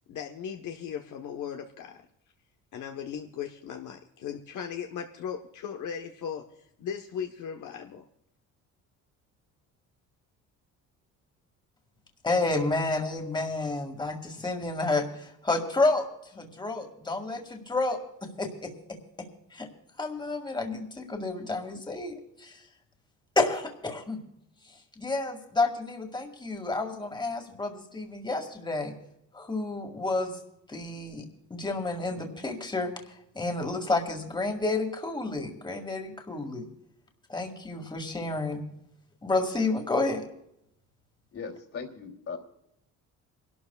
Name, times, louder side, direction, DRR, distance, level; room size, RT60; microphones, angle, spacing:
voice 1, 0.1-2.0 2.7-6.4 6.8-8.1, left 8 dB, 70° left, 4 dB, 1.2 m, -37 dB
voice 2, 12.2-19.7 20.0-22.7 23.4-24.2 24.6-28.9 29.3-30.4 30.7-36.7 37.3-38.6 39.2-40.3, left 2 dB, 15° left, 3 dB, 2.1 m, -30 dB
voice 3, 41.3-42.4, left 5 dB, 45° left, 2 dB, 3.0 m, -38 dB
27.0 x 12.5 x 2.4 m, 0.79 s
cardioid pair, 105°, 32 cm